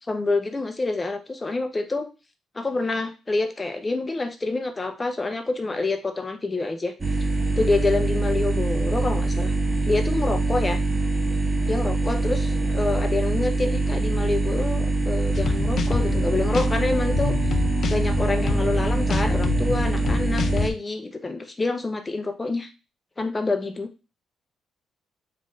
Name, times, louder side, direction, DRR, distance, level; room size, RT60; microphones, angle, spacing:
voice 1, 0.0-2.1 2.5-6.9 7.6-9.5 9.8-10.8 11.7-17.4 17.9-22.7 23.2-23.9, left 3 dB, 20° left, 6 dB, 0.7 m, -27 dB
sound 1, 7.0-20.7, right 2 dB, 25° right, 0.7 m, -24 dB
sound 2, 15.3-20.7, left 6 dB, 55° left, 0.3 m, -28 dB
3.2 x 2.6 x 3.9 m, 0.30 s
cardioid pair, 90°, 0 cm